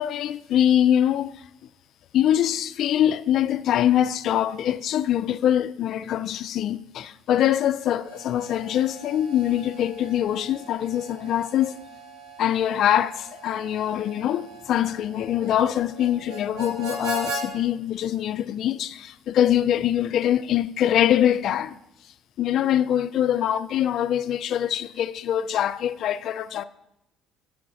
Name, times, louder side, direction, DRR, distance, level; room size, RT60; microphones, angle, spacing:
voice 1, 0.0-1.4 2.1-11.8 12.4-21.8 22.4-26.6, left 11 dB, 55° left, 0.4 m, -23 dB
Harmonica, 7.9-17.5, right 1 dB, 60° right, 2.4 m, -39 dB
12.0 x 4.8 x 6.2 m
cardioid pair, 135°, 0 cm